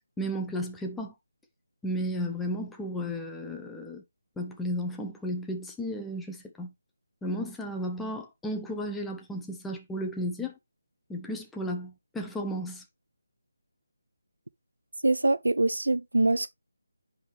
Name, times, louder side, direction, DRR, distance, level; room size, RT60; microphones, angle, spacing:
voice 1, 0.2-1.1 1.8-4.0 4.4-6.7 7.2-10.6 11.1-12.8, equal, 5° left, 0.6 m, -34 dB
voice 2, 15.0-16.5, right 2 dB, 75° right, 0.4 m, -24 dB
10.0 x 3.6 x 3.1 m
figure-of-eight pair, 160°, 0 cm